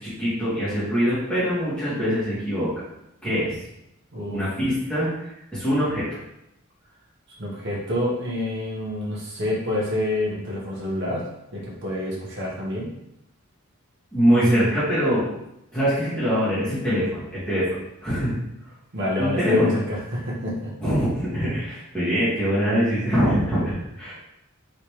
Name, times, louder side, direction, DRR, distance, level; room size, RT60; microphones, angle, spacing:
voice 1, 0.0-2.7 3.2-3.6 4.3-6.1 14.1-15.3 15.7-17.7 18.0-18.4 19.2-19.7 20.8-24.1, equal, 5° left, -12 dB, 1.4 m, -23 dB
voice 2, 7.4-11.3 11.5-12.9 18.9-20.7, left 1 dB, 60° right, -4 dB, 1.1 m, -27 dB
3.2 x 3.2 x 3.0 m, 0.84 s
head